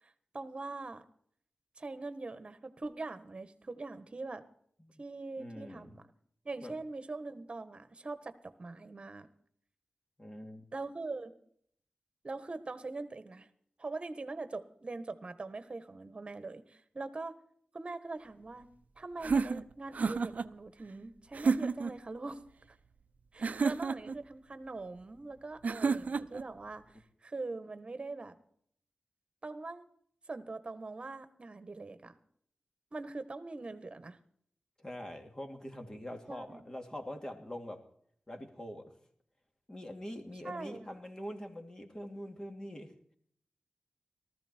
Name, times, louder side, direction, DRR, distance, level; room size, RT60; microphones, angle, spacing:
voice 1, 0.3-1.0 1.8-4.4 5.0-6.0 6.4-9.3 10.7-11.3 12.2-13.5 13.8-17.3 17.7-18.7 19.0-22.4 22.7-22.8 23.3-28.4 29.4-29.9 30.3-32.2 32.9-34.2 36.3-36.6 40.4-40.9, right 3 dB, 40° right, 11 dB, 1.4 m, -42 dB
voice 2, 5.4-5.9 6.6-6.8 10.2-10.6 34.8-37.8 38.3-38.9 39.7-42.9, equal, 25° left, 4 dB, 2.8 m, -44 dB
sound 1, 19.2-20.5 21.3-22.0 23.4-24.2 25.6-26.4, right 5 dB, 60° right, 0.6 m, -31 dB
18.5 x 14.0 x 4.5 m, 0.64 s
wide cardioid pair, 110°, 3 cm